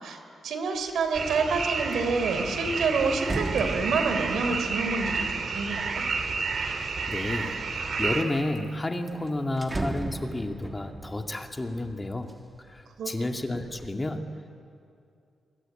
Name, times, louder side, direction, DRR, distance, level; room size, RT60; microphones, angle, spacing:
voice 1, 0.0-6.1 13.0-13.1, right 4 dB, 75° right, 7 dB, 3.5 m, -28 dB
sound 1, 0.8-1.2 1.6-6.9 7.5-8.2 8.6-8.7 8.9-12.9 13.2-13.9, right 2 dB, 20° right, 1.4 m, -38 dB
sound 2, 1.1-8.2, right 4 dB, 55° right, 3.0 m, -30 dB
voice 2, 7.1-7.7 8.0-14.5, left 2 dB, 20° left, 4 dB, 2.1 m, -31 dB
25.0 x 23.5 x 8.9 m, 2.5 s
cardioid pair, 85°, 0 cm